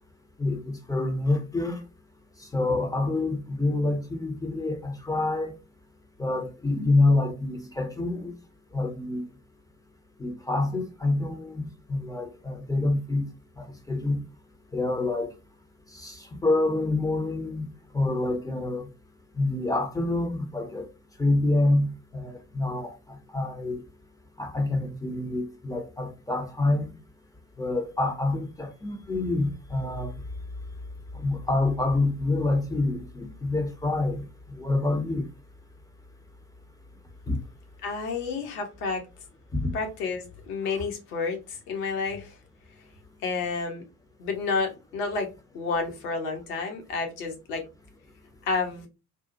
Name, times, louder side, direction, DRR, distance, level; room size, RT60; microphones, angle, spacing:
voice 1, 0.4-1.8 2.4-5.5 6.2-8.3 8.7-9.3 10.2-13.3 13.6-14.2 14.7-15.3 15.9-17.7 17.9-18.9 19.3-20.8 21.2-23.8 24.4-26.9 27.6-30.1 31.1-34.3 34.6-35.3 37.3-37.4 39.5-39.7, left 2 dB, 10° left, 0.4 m, -27 dB
voice 2, 37.8-39.0 39.7-42.4 43.2-43.8 44.2-47.6 48.4-48.9, left 4 dB, 70° left, 0.8 m, -30 dB
2.7 x 2.1 x 2.6 m
figure-of-eight pair, 50°, 47 cm